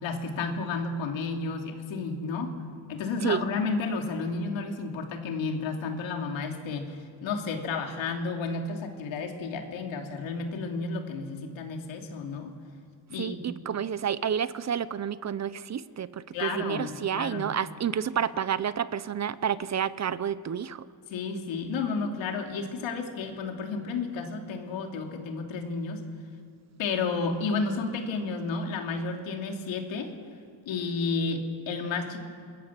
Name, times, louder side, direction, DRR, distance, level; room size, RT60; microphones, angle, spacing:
voice 1, 0.0-2.5 2.9-12.5 13.1-13.5 16.3-17.5 21.1-26.0 26.8-30.1 30.7-32.2, left 4 dB, 90° left, 3 dB, 2.9 m, -32 dB
voice 2, 13.2-20.8, right 8 dB, 35° right, 16 dB, 0.7 m, -30 dB
27.0 x 21.5 x 7.5 m, 2.2 s
cardioid pair, 125°, 45 cm